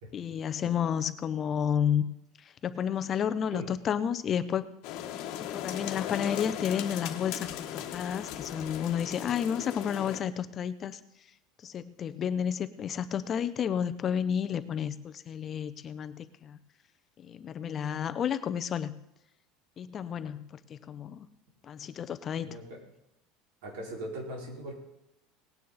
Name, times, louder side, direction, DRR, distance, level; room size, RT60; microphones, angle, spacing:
voice 1, 0.1-2.0 2.6-4.7 5.4-11.0 11.6-16.6 17.2-18.9 19.8-20.4 20.7-21.3 21.7-22.6, left 8 dB, 25° left, 12 dB, 0.6 m, -31 dB
sound 1, 4.8-10.2, left 11 dB, 55° left, 1.2 m, -37 dB
voice 2, 22.4-22.8 23.6-24.7, right 1 dB, 80° right, 0 dB, 4.6 m, -39 dB
18.5 x 9.5 x 4.0 m, 0.88 s
cardioid pair, 160°, 0 cm